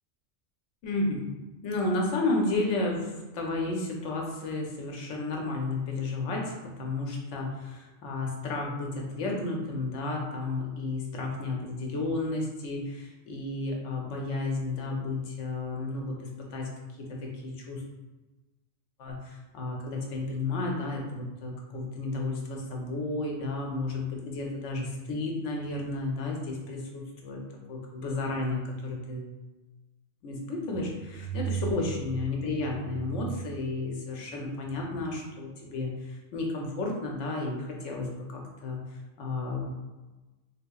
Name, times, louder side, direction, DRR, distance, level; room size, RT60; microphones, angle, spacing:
voice 1, 0.8-1.3 1.6-6.5 6.8-16.2 16.5-16.7 17.0-17.8 19.0-27.4 27.7-29.3 30.2-38.8 39.2-39.7, left 2 dB, 90° left, 0 dB, 1.1 m, -32 dB
3.7 x 2.8 x 2.3 m, 1.1 s
omnidirectional pair, 1.2 m